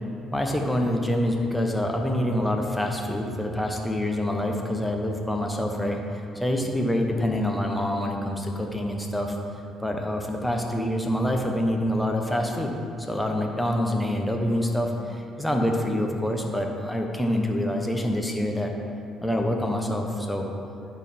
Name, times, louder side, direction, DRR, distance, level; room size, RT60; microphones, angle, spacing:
voice 1, 0.3-6.0 6.3-9.4 9.8-18.7 19.2-20.5, left 1 dB, 5° left, 1 dB, 0.9 m, -26 dB
10.5 x 3.9 x 4.3 m, 2.5 s
supercardioid pair, 80°, 0 cm